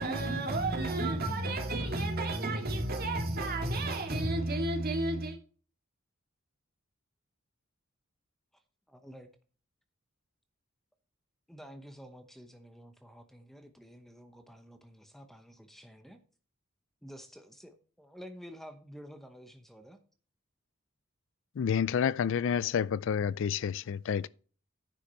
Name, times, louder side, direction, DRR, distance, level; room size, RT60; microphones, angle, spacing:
voice 1, 0.0-5.4, right 2 dB, 45° right, 2.3 m, -31 dB
voice 2, 8.9-9.3 11.5-16.2 17.0-20.0, equal, ahead, 0.9 m, -50 dB
voice 3, 21.6-24.3, left 7 dB, 60° left, 0.3 m, -29 dB
10.0 x 6.0 x 5.5 m
head